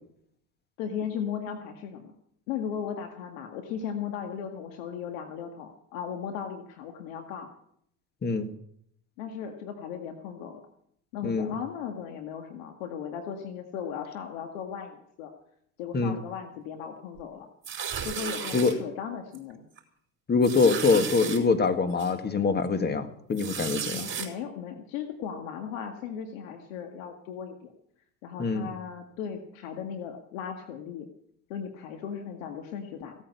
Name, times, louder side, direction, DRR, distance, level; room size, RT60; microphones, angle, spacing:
voice 1, 0.8-2.1 2.5-7.5 9.2-10.6 11.1-15.3 15.8-17.5 18.0-19.7 23.7-27.7 28.2-31.1 31.5-33.1, left 7 dB, 75° left, 5 dB, 2.0 m, -37 dB
voice 2, 8.2-8.5 11.2-11.5 15.9-16.2 18.5-18.7 20.3-24.1 28.4-28.7, left 4 dB, 25° left, 9 dB, 1.9 m, -24 dB
sound 1, 17.6-18.7 19.3-19.5 19.8-19.9 20.4-21.4 22.0-22.1 23.3-24.3, right 7 dB, 30° right, 4.7 m, -34 dB
16.5 x 8.7 x 8.4 m, 0.68 s
supercardioid pair, 95°, 40 cm